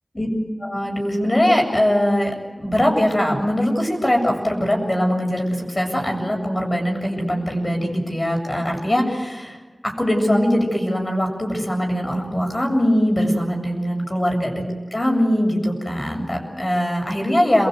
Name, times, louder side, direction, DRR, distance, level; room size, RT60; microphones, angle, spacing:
voice 1, 0.6-9.6 9.8-14.6 14.9-17.7, equal, 35° left, 2 dB, 7.5 m, -21 dB
28.5 x 22.5 x 8.1 m, 1.2 s
wide cardioid pair, 60°, 0 cm